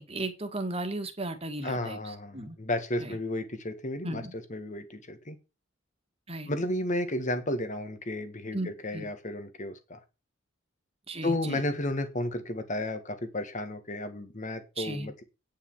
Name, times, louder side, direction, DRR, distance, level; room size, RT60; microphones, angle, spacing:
voice 1, 0.0-2.6 3.0-3.2 4.0-4.3 6.3-6.5 8.5-9.1 11.1-11.6 14.8-15.1, right 2 dB, 30° right, 7 dB, 1.9 m, -35 dB
voice 2, 1.6-4.2 4.5-5.4 6.5-10.0 11.2-15.2, left 1 dB, 40° left, 9 dB, 1.8 m, -33 dB
9.6 x 5.6 x 7.2 m, 0.29 s
head